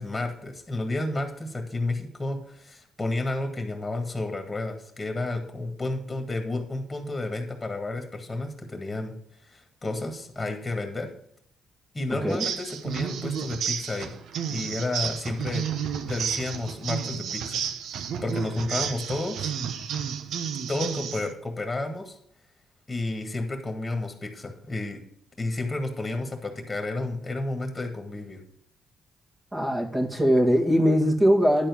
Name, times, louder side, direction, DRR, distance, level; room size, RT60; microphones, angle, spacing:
voice 1, 0.0-9.1 9.4-11.1 11.9-14.1 14.5-15.7 16.0-17.6 18.2-19.5 20.7-22.2 22.9-25.0 25.4-28.4, left 2 dB, 20° left, 4 dB, 1.9 m, -31 dB
sound 1, 12.3-21.3, right 8 dB, 75° right, 0.7 m, -31 dB
voice 2, 29.5-31.7, equal, 20° right, 0 dB, 1.9 m, -21 dB
10.5 x 4.4 x 7.0 m, 0.71 s
cardioid pair, 90°, 0 cm